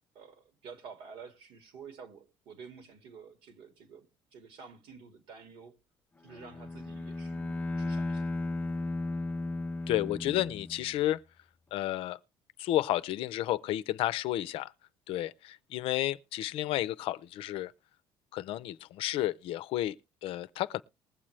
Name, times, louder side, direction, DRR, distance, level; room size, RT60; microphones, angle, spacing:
voice 1, 0.1-5.8 6.2-8.3, right 5 dB, 70° right, 2.0 m, -50 dB
Bowed string instrument, 6.3-11.1, left 2 dB, 15° left, 0.5 m, -35 dB
voice 2, 9.9-11.2 11.7-12.2 12.6-14.7 15.1-17.7 18.3-20.0 20.2-20.8, left 14 dB, 70° left, 0.5 m, -31 dB
20.0 x 7.4 x 3.2 m
cardioid pair, 130°, 10 cm